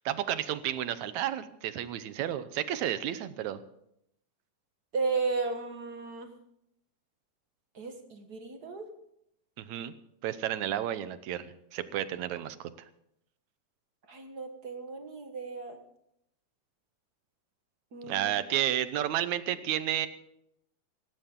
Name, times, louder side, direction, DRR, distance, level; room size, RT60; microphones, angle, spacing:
voice 1, 0.1-3.6 9.6-9.9 10.2-12.7 18.1-20.1, right 11 dB, 80° right, 13 dB, 2.2 m, -31 dB
voice 2, 4.9-6.3 7.7-8.8 14.1-15.8 17.9-18.2, right 4 dB, 40° right, 5 dB, 1.6 m, -34 dB
17.0 x 17.0 x 3.7 m, 0.75 s
omnidirectional pair, 3.3 m